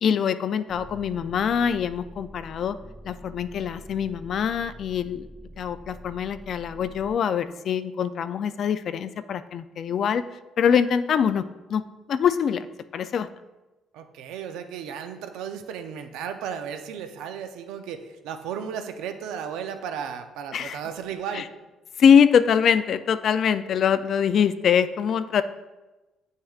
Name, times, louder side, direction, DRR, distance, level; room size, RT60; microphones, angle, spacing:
voice 1, 0.0-2.8 3.0-5.3 5.6-10.2 10.6-11.4 11.7-11.8 12.1-12.7 12.9-13.3 20.5-20.8 21.3-21.5 22.0-25.4, left 7 dB, 55° left, 12 dB, 0.3 m, -23 dB
sound 1, 0.7-7.1, equal, ahead, 0.6 m, -45 dB
voice 2, 13.9-21.5, right 7 dB, 90° right, 7 dB, 0.6 m, -34 dB
8.6 x 6.4 x 2.4 m, 1.1 s
cardioid pair, 100°, 0 cm